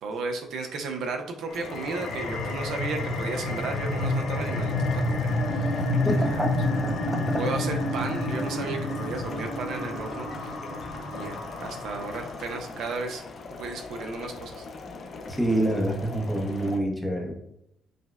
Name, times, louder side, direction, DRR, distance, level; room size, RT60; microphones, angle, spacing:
voice 1, 0.0-6.4 7.3-10.6 11.1-13.2 13.5-14.6, right 4 dB, 75° right, 4 dB, 0.5 m, -34 dB
sound 1, 1.5-12.7, left 2 dB, 85° left, 0.7 m, -29 dB
sound 2, 1.5-16.8, left 3 dB, 40° left, 0.4 m, -41 dB
voice 2, 6.0-6.5 6.8-7.2 15.3-17.3, right 1 dB, ahead, 1 dB, 0.6 m, -27 dB
4.9 x 2.1 x 2.3 m, 0.79 s
cardioid pair, 130°, 0 cm